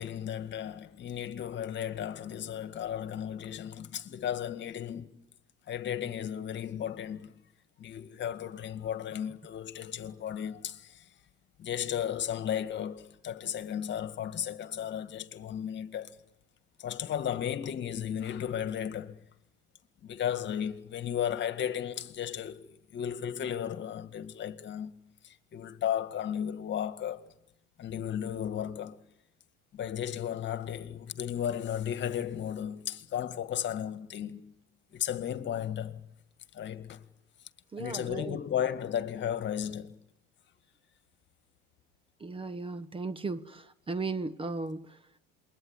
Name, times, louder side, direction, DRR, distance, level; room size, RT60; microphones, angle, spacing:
voice 1, 0.0-5.2 5.7-7.3 7.8-11.1 11.6-16.2 16.8-19.2 20.0-24.9 25.2-27.2 27.8-29.0 29.7-34.5 34.9-36.0 36.5-37.1 37.8-40.0, left 9 dB, 40° left, 2.0 m, -34 dB
voice 2, 37.7-38.4 42.2-45.0, right 3 dB, 20° right, 1.1 m, -36 dB
28.0 x 22.0 x 9.8 m
supercardioid pair, 115°, 29 cm